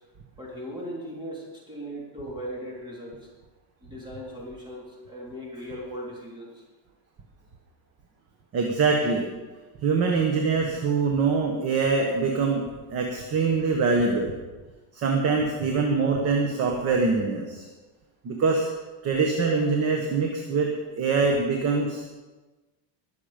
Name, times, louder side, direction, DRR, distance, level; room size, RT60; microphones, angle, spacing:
voice 1, 0.4-3.3 3.8-6.6, equal, 10° right, -4 dB, 3.5 m, -38 dB
voice 2, 8.5-9.3 9.8-12.7 12.9-14.3 14.9-17.7 18.2-18.7 19.0-22.0, right 4 dB, 30° right, 2 dB, 1.3 m, -24 dB
20.5 x 7.1 x 5.1 m, 1.2 s
cardioid pair, 165°, 50 cm